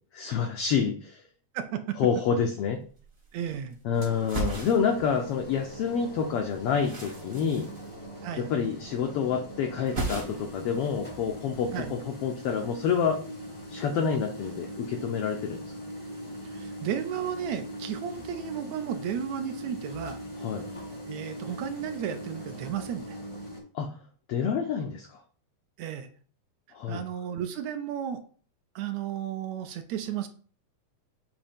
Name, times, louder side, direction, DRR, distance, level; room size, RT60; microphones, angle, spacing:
voice 1, 0.1-1.2 2.0-2.8 3.8-7.7 8.4-13.2 13.7-15.7 20.4-20.7 23.7-24.0 24.3-25.2 26.7-27.0, left 6 dB, 80° left, 4 dB, 1.3 m, -28 dB
voice 2, 1.5-2.0 3.3-3.8 8.2-8.5 11.7-12.0 16.5-20.2 21.1-23.2 25.8-26.1 26.9-28.2 28.8-30.3, right 9 dB, 75° right, 8 dB, 1.8 m, -33 dB
sound 1, 2.6-2.7 2.9-3.8 4.1-5.8 6.0-8.6 8.8-9.3 9.6-10.6 10.9-11.7, right 2 dB, 60° right, 0.5 m, -36 dB
sound 2, 3.9-23.6, equal, 25° left, 0.6 m, -41 dB
7.1 x 2.7 x 5.1 m, 0.42 s
omnidirectional pair, 3.3 m